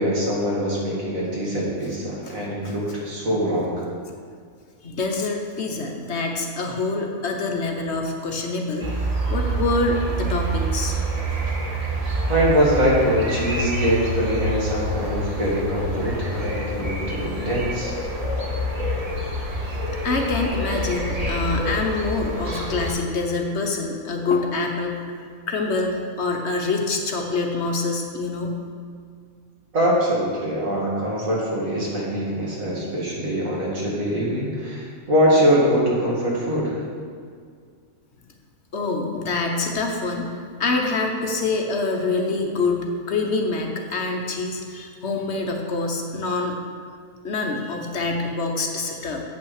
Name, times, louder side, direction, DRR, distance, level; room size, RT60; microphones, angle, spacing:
voice 1, 0.0-3.8 12.3-17.9 29.7-36.8, equal, 80° right, -5 dB, 2.6 m, -23 dB
voice 2, 4.8-8.9 9.3-10.9 20.0-25.0 25.5-28.6 38.7-40.3 40.6-46.6 47.2-49.2, left 3 dB, 55° left, 2 dB, 1.2 m, -25 dB
sound 1, 8.8-22.9, right 1 dB, 30° right, 1.2 m, -27 dB
8.3 x 5.9 x 6.4 m, 2.1 s
omnidirectional pair, 1.4 m